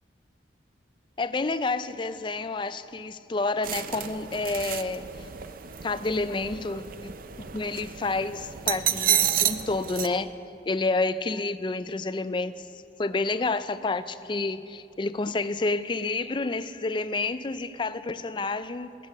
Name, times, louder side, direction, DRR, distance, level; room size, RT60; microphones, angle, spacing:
voice 1, 1.2-5.3 5.8-10.3 10.7-12.7 13.0-19.0, left 3 dB, 25° left, 13 dB, 0.4 m, -29 dB
sound 1, 3.6-10.1, right 10 dB, 50° right, 0.5 m, -30 dB
20.0 x 8.4 x 6.4 m, 2.7 s
head